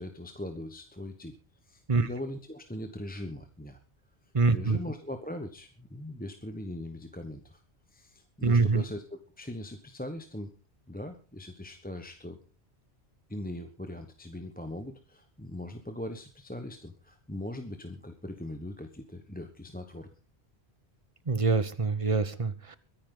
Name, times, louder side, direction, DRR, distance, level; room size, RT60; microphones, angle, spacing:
voice 1, 0.0-1.4 1.6-3.8 4.5-7.6 7.9-10.5 10.9-12.4 13.3-20.1, left 1 dB, 10° left, 6 dB, 1.1 m, -40 dB
voice 2, 4.3-4.8 8.4-8.8 21.3-22.8, right 4 dB, 30° right, 14 dB, 1.1 m, -25 dB
22.5 x 10.5 x 3.9 m, 0.36 s
omnidirectional pair, 1.1 m